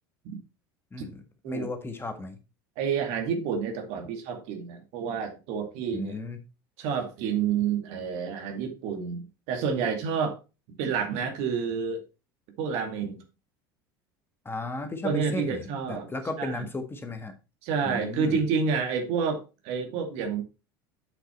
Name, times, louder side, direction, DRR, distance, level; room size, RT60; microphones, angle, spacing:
voice 1, 0.9-2.4 5.9-6.4 14.4-17.3 17.8-18.4, left 2 dB, 20° left, 7 dB, 1.7 m, -35 dB
voice 2, 2.8-6.2 6.8-10.4 10.8-12.0 12.6-13.2 15.0-16.1 16.4-16.6 17.6-20.4, right 6 dB, 65° right, 5 dB, 2.3 m, -29 dB
7.8 x 6.1 x 4.4 m, 0.29 s
hypercardioid pair, 80°, 12 cm